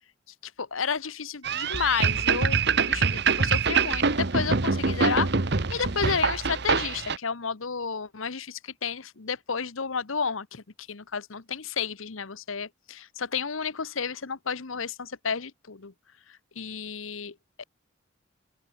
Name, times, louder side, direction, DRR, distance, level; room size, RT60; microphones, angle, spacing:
voice 1, 0.4-2.6 2.9-5.3 5.7-15.9 16.3-17.6, left 6 dB, 85° left, 1.1 m, -31 dB
sound 1, 1.4-7.2, right 5 dB, 55° right, 1.0 m, -25 dB
open air
head